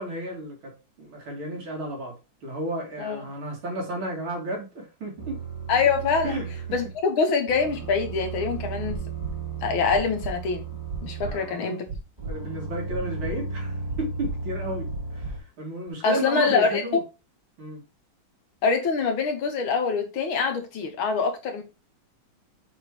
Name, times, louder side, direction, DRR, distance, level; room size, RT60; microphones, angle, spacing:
voice 1, 0.0-2.1 2.4-5.5 6.2-6.5 11.2-11.8 12.3-17.0 17.6-17.8, right 1 dB, 75° right, 3.0 m, -33 dB
voice 2, 3.0-3.3 5.7-6.4 6.7-9.0 9.6-10.6 11.0-11.9 16.0-16.8 18.6-21.6, left 5 dB, 75° left, 2.0 m, -24 dB
sound 1, 5.2-7.0 7.5-11.6 12.2-15.4, right 4 dB, 20° right, 2.1 m, -35 dB
sound 2, 8.9-9.3 9.9-10.3 10.9-11.3 11.9-12.3 12.9-13.3 13.9-14.3 14.9-15.3 15.9-16.0, right 4 dB, 50° right, 0.9 m, -34 dB
5.9 x 3.6 x 4.5 m
omnidirectional pair, 2.3 m